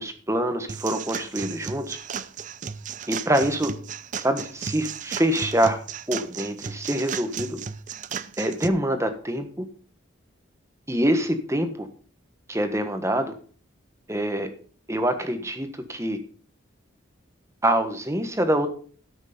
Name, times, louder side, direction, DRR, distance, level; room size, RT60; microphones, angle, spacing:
voice 1, 0.0-2.0 3.1-3.7 4.1-5.8 6.1-7.6 8.4-9.7 10.9-11.9 12.5-13.3 14.1-14.5 14.9-16.2 17.6-18.7, right 1 dB, 15° right, 7 dB, 1.3 m, -25 dB
sound 1, 0.7-8.7, right 6 dB, 40° right, 0.5 m, -34 dB
13.0 x 6.4 x 5.1 m, 0.42 s
head